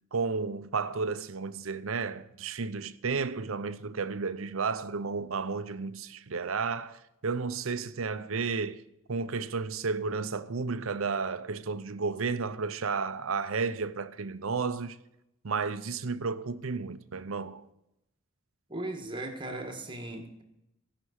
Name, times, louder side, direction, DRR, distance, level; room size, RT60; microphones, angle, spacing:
voice 1, 0.1-8.8 9.1-15.0 15.4-17.6, right 4 dB, 75° right, 0.7 m, -32 dB
voice 2, 18.7-20.4, right 2 dB, 25° right, 1.7 m, -37 dB
16.0 x 6.0 x 8.0 m
head